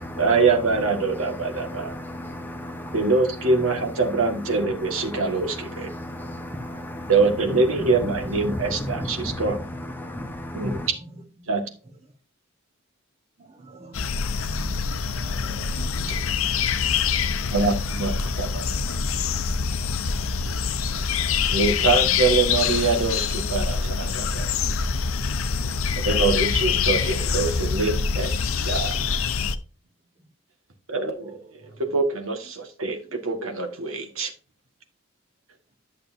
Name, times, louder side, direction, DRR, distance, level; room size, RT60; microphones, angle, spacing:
voice 1, 0.2-2.0 2.9-5.9 7.1-9.6 10.5-10.8 11.5-11.7 17.5-18.7 21.5-24.5 26.0-29.2 30.9-34.3, right 4 dB, 75° right, 1.6 m, -24 dB
voice 2, 1.7-2.9 5.9-7.1 8.9-9.4 10.0-10.9, left 1 dB, 10° left, 1.2 m, -34 dB
voice 3, 13.5-14.7 15.1-16.4 17.3-17.4 21.4-21.5, right 2 dB, 30° right, 1.4 m, -47 dB
sound 1, 13.9-29.6, left 6 dB, 80° left, 0.7 m, -25 dB
11.5 x 6.7 x 2.7 m
head